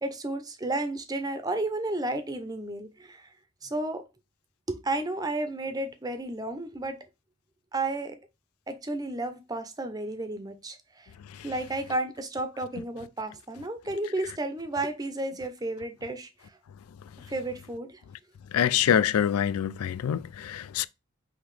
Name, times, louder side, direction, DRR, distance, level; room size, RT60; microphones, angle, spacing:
voice 1, 0.0-3.3 3.6-4.0 4.7-7.0 7.7-8.2 8.7-11.1 11.4-16.6 17.3-18.0, right 2 dB, 15° right, 0.6 m, -32 dB
voice 2, 18.5-20.9, left 9 dB, 85° left, 0.3 m, -25 dB
5.7 x 2.9 x 3.2 m
head